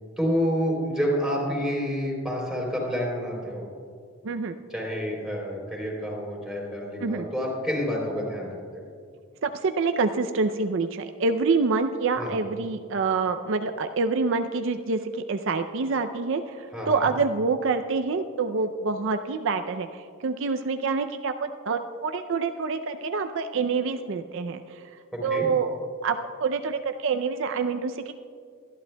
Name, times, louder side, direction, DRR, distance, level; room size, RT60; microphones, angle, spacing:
voice 1, 0.2-3.7 4.7-8.5 8.7-8.8 12.1-12.3 16.7-17.1 25.1-25.4, equal, ahead, -3 dB, 3.4 m, -28 dB
voice 2, 9.4-24.6 25.2-25.8 26.0-28.1, right 4 dB, 65° right, 8 dB, 0.5 m, -26 dB
25.0 x 11.5 x 2.2 m, 2.2 s
head